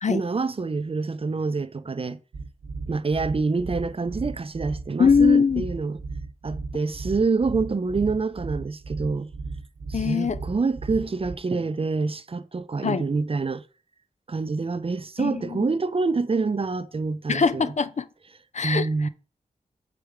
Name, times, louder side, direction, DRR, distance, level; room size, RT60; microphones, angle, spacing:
voice 1, 0.1-2.2 2.9-6.0 6.4-9.3 9.9-13.6 14.3-17.7 18.6-19.1, right 4 dB, 40° right, 0.6 m, -26 dB
sound 1, 2.3-11.4, right 3 dB, 90° right, 1.1 m, -35 dB
voice 2, 5.0-5.7 9.9-10.4 12.8-13.1 15.2-15.7 17.3-18.1 18.5-19.1, left 5 dB, 55° left, 0.6 m, -22 dB
6.9 x 4.8 x 5.1 m
wide cardioid pair, 65°, 14 cm